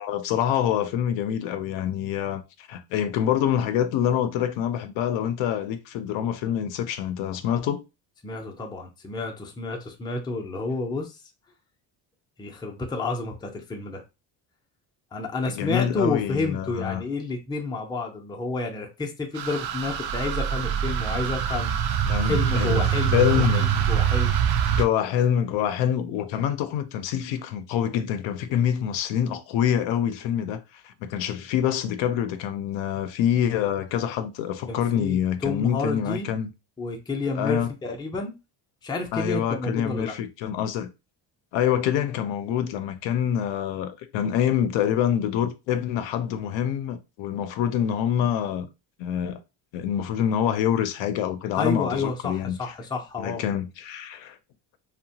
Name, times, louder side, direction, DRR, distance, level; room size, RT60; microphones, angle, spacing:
voice 1, 0.0-7.8 15.4-17.0 22.1-23.6 24.7-36.5 37.4-37.7 39.1-40.9 41.5-48.7 49.0-49.4 49.7-52.6 53.2-54.4, left 9 dB, 80° left, 0.5 m, -26 dB
voice 2, 8.2-11.2 12.4-14.0 15.1-21.7 22.2-24.4 34.7-36.3 36.8-38.3 38.8-40.1 51.6-53.4, left 3 dB, 10° left, 0.4 m, -30 dB
sound 1, 19.4-24.8, right 8 dB, 60° right, 0.5 m, -24 dB
2.8 x 2.2 x 2.7 m
cardioid pair, 125°, 44 cm